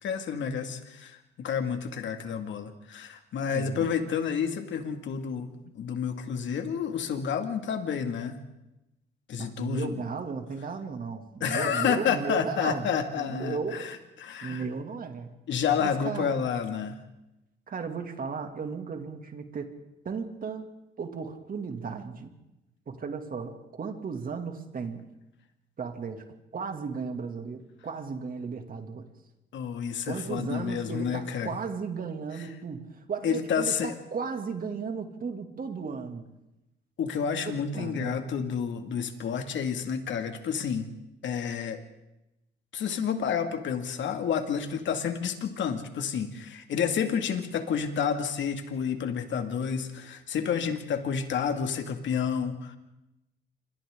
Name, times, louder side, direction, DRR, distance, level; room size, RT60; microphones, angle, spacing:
voice 1, 0.0-8.4 9.3-9.9 11.4-14.0 14.2-14.6 15.5-17.0 29.5-31.6 33.2-33.9 37.0-40.9 41.2-41.8 42.7-52.8, left 7 dB, 70° left, 6 dB, 2.3 m, -30 dB
voice 2, 3.5-4.0 9.4-13.9 14.4-15.3 15.8-16.4 17.7-19.7 20.0-20.7 21.0-22.3 22.9-25.0 25.8-26.2 26.5-29.1 30.1-36.3 37.5-38.2, right 5 dB, 45° right, 5 dB, 2.6 m, -35 dB
27.5 x 25.0 x 3.9 m, 0.95 s
cardioid pair, 90°, 20 cm